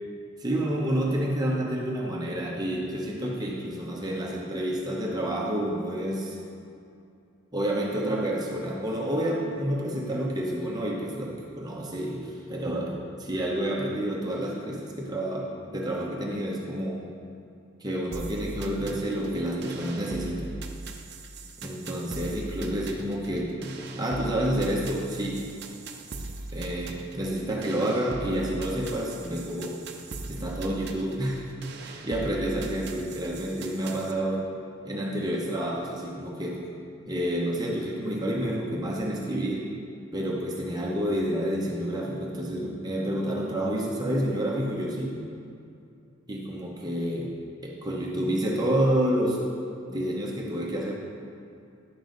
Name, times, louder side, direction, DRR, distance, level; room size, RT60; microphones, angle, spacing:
voice 1, 0.4-6.4 7.5-17.0 17.8-20.5 21.6-23.5 23.9-25.4 26.5-29.8 30.3-31.5 31.8-34.4 34.8-36.6 37.1-39.7 40.1-45.2 46.3-47.3 47.6-49.4 49.9-50.9, right 1 dB, 20° right, -2 dB, 0.8 m, -29 dB
sound 1, 18.1-34.1, right 2 dB, 50° right, 0.6 m, -40 dB
10.5 x 6.9 x 3.9 m, 2.5 s
head